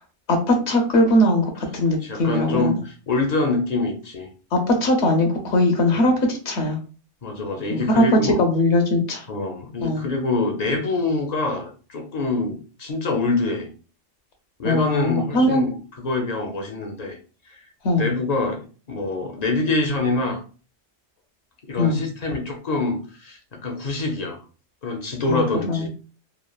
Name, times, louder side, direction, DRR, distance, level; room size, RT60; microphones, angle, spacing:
voice 1, 0.3-2.7 4.5-6.8 7.7-9.2 9.8-10.0 14.6-15.7 17.8-18.2 21.8-22.0 25.3-25.9, left 1 dB, 70° left, 3 dB, 0.9 m, -20 dB
voice 2, 2.0-4.3 5.9-6.0 7.2-8.4 9.3-13.7 14.6-17.2 17.5-17.6 18.0-20.4 21.6-24.4 24.8-25.9, left 3 dB, 50° left, 4 dB, 0.5 m, -25 dB
3.1 x 2.3 x 2.3 m, 0.36 s
omnidirectional pair, 1.2 m